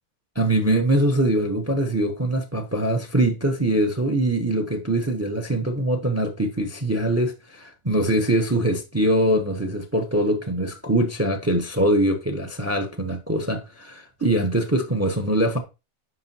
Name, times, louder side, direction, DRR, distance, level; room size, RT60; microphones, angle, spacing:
voice 1, 0.4-15.6, right 1 dB, 15° right, 0.5 m, -23 dB
9.8 x 5.2 x 2.8 m
omnidirectional pair, 1.5 m